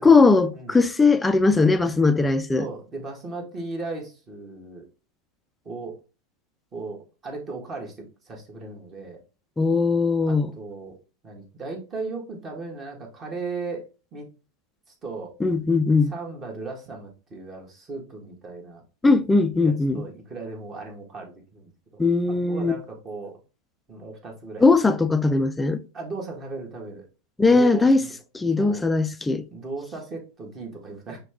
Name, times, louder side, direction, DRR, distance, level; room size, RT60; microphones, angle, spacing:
voice 1, 0.0-2.6 9.6-10.5 15.4-16.1 19.0-20.0 22.0-22.7 24.6-25.8 27.4-28.0 28.3-29.4, left 3 dB, 10° left, 0.4 m, -19 dB
voice 2, 2.6-4.9 5.7-6.0 6.7-9.2 10.3-11.0 11.2-13.9 14.1-14.3 14.9-15.3 16.1-18.8 19.6-21.7 22.3-23.4 23.9-24.9 25.9-27.1 27.5-28.1 28.6-28.9 29.5-31.2, right 3 dB, 30° right, 1.7 m, -36 dB
5.8 x 2.3 x 3.5 m
hypercardioid pair, 100°, 0 cm